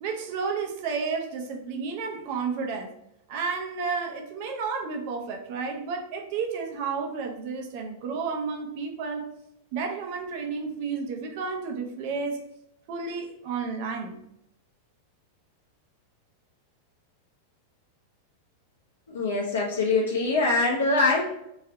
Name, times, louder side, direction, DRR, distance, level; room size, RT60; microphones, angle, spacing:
voice 1, 0.0-2.9 3.3-9.3 9.7-12.4 12.9-14.2, right 5 dB, 45° right, 3 dB, 0.6 m, -31 dB
voice 2, 19.1-21.3, left 3 dB, 70° left, -3 dB, 0.6 m, -23 dB
3.1 x 2.8 x 3.5 m, 0.82 s
figure-of-eight pair, 90°, 0 cm